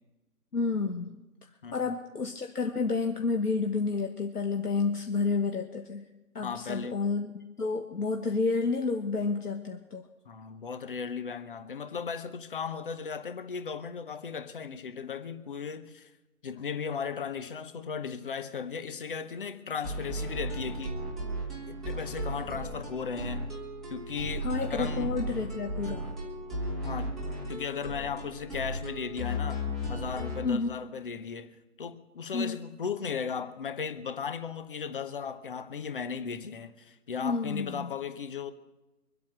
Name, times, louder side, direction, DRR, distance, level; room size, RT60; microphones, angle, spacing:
voice 1, 0.5-1.2 1.7-6.0 6.3-7.3 7.6-10.1 24.4-26.1 30.4-30.7 32.3-32.6 37.2-37.9, left 4 dB, 75° left, 1.6 m, -30 dB
voice 2, 1.6-1.9 6.4-7.0 10.3-16.1 16.4-21.0 21.7-23.4 23.9-25.1 26.8-27.1 27.5-38.5, left 6 dB, 35° left, 0.9 m, -36 dB
sound 1, 19.8-30.5, equal, ahead, 1.2 m, -35 dB
23.5 x 8.5 x 6.1 m
figure-of-eight pair, 150°, 47 cm